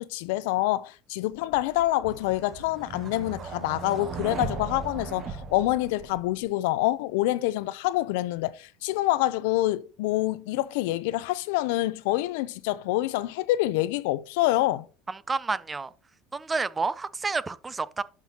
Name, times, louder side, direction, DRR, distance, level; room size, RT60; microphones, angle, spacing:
voice 1, 0.0-14.9, left 16 dB, 85° left, 0.5 m, -26 dB
sound 1, 1.5-6.4, right 5 dB, 35° right, 1.0 m, -37 dB
voice 2, 15.1-15.9 16.3-18.0, right 4 dB, 15° right, 0.3 m, -29 dB
11.0 x 5.9 x 2.9 m
cardioid pair, 145°, 0 cm